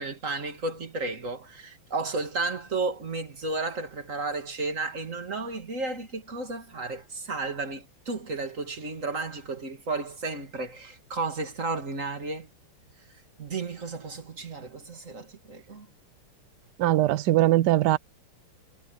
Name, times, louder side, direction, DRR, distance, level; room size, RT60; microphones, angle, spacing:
voice 1, 0.0-12.5 13.4-15.9, right 3 dB, 35° right, 2.8 m, -33 dB
voice 2, 16.8-18.0, right 15 dB, 75° right, 0.9 m, -21 dB
omnidirectional pair, 2.4 m